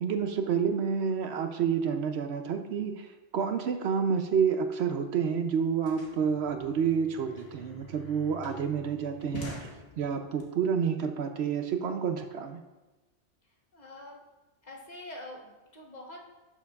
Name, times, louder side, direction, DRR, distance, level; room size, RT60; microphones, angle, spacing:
voice 1, 0.0-12.6, right 6 dB, 70° right, 7 dB, 0.8 m, -29 dB
sound 1, 5.8-10.4, equal, 80° left, 1.7 m, -46 dB
voice 2, 13.7-14.2 14.6-16.2, left 1 dB, 40° left, 0 dB, 1.1 m, -45 dB
11.5 x 6.8 x 2.3 m, 1.1 s
omnidirectional pair, 1.2 m